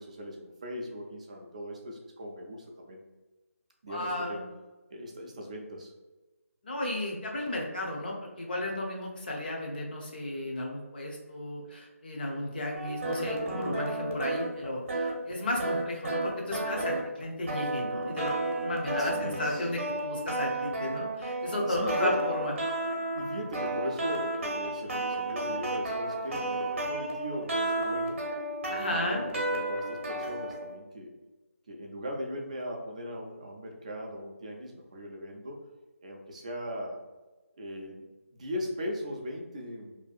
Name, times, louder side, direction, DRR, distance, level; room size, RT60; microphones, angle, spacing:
voice 1, 0.0-3.0 3.8-4.4 4.9-5.9 13.1-13.5 18.9-19.7 21.7-22.3 23.1-28.2 28.7-31.1 31.7-35.6 36.0-37.0 37.6-40.0, equal, 25° right, 0 dB, 0.3 m, -39 dB
voice 2, 3.9-4.5 6.6-22.5 28.7-29.2, left 1 dB, 40° left, -1 dB, 0.6 m, -34 dB
sound 1, 12.7-30.8, right 2 dB, 55° right, 0.7 m, -32 dB
2.6 x 2.3 x 2.3 m, 1.1 s
figure-of-eight pair, 165°, 8 cm